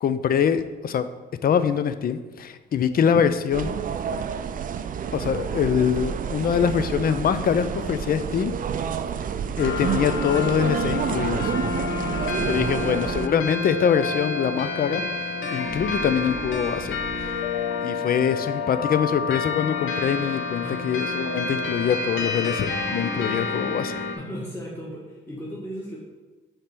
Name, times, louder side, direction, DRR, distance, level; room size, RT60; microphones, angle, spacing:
voice 1, 0.0-1.1 1.4-3.8 5.1-8.6 9.6-11.5 12.4-15.0 15.5-17.3 17.8-24.0, left 8 dB, 50° left, 11 dB, 0.5 m, -24 dB
sound 1, 3.5-13.3, right 7 dB, 45° right, 0.4 m, -29 dB
sound 2, 9.6-24.2, left 3 dB, 75° left, 1.1 m, -29 dB
voice 2, 12.4-13.0 20.6-20.8 24.1-26.0, equal, 10° left, -6 dB, 1.6 m, -35 dB
sound 3, 15.6-17.8, right 2 dB, 15° right, 1.3 m, -41 dB
5.0 x 4.4 x 6.0 m, 1.3 s
cardioid pair, 90°, 20 cm